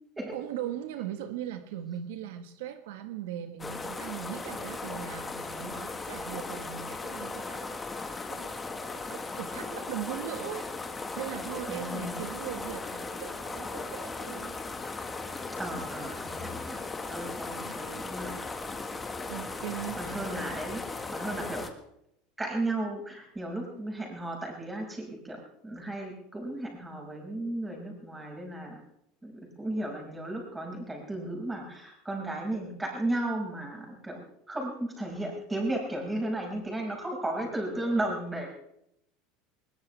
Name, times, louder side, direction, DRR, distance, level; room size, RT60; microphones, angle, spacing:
voice 1, 0.3-8.6 8.9-10.7 11.2-14.6 17.5-17.9 18.8-19.0 19.3-20.2, right 11 dB, 85° right, 8 dB, 1.5 m, -39 dB
sound 1, 3.6-21.7, left 3 dB, 15° left, 1.7 m, -37 dB
voice 2, 11.7-12.2 15.5-16.8 17.1-18.4 19.7-21.7 22.4-28.8 29.2-38.5, right 1 dB, 10° right, 1 dB, 5.8 m, -34 dB
21.0 x 20.0 x 3.4 m, 0.77 s
supercardioid pair, 145°, 0 cm